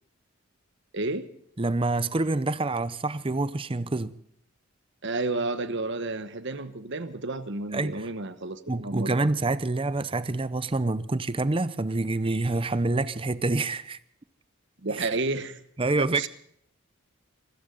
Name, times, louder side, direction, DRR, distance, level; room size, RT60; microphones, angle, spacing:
voice 1, 0.9-1.3 5.0-9.2 14.8-15.6 16.0-16.3, right 2 dB, 55° right, 1.2 m, -31 dB
voice 2, 1.6-4.1 7.7-8.1 8.7-14.0 14.9-15.1 15.8-16.3, right 2 dB, 25° right, 0.6 m, -27 dB
25.0 x 14.0 x 3.9 m
head